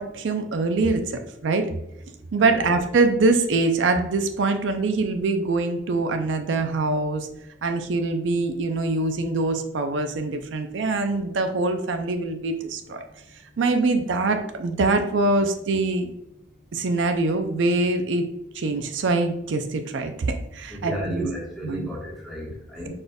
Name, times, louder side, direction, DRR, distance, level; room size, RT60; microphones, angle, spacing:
voice 1, 0.0-1.7 2.3-7.3 7.6-13.0 13.6-16.1 16.7-18.3 18.5-21.3 21.6-21.9, right 3 dB, 80° right, 6 dB, 0.4 m, -24 dB
voice 2, 20.7-22.9, equal, ahead, -6 dB, 1.4 m, -32 dB
5.0 x 4.2 x 2.3 m, 0.82 s
head